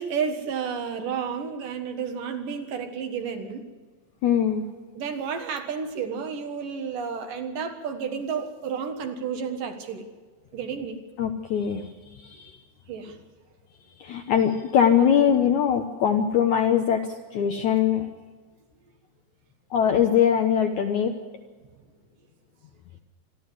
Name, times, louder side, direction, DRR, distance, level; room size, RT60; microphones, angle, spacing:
voice 1, 0.0-3.6 4.9-10.0 10.5-11.0 12.9-13.2 15.0-15.3, right 6 dB, 65° right, 6 dB, 2.9 m, -31 dB
voice 2, 4.2-4.7 11.2-11.9 12.2-12.5 14.0-18.1 19.7-21.1, left 8 dB, 70° left, 5 dB, 1.9 m, -22 dB
27.0 x 11.5 x 8.3 m, 1.4 s
omnidirectional pair, 4.6 m